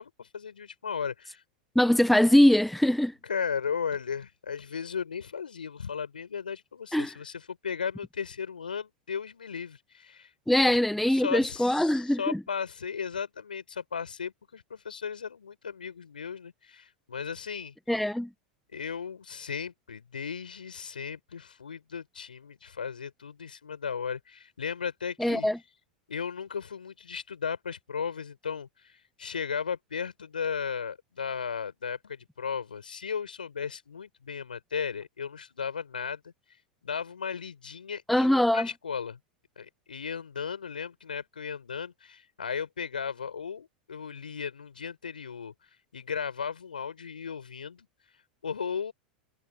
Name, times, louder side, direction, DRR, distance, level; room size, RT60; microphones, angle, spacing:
voice 1, 0.0-1.4 3.2-10.3 10.6-10.8 11.0-17.7 18.7-25.5 26.1-36.3 36.8-38.3 38.5-39.2 39.6-45.5 45.9-47.9 48.4-48.9, left 6 dB, 75° left, 6.2 m, -36 dB
voice 2, 1.7-3.1 6.9-7.1 10.5-12.4 17.9-18.3 25.2-25.6 38.1-38.7, left 1 dB, ahead, 0.7 m, -22 dB
figure-of-eight pair, 90°, 5 cm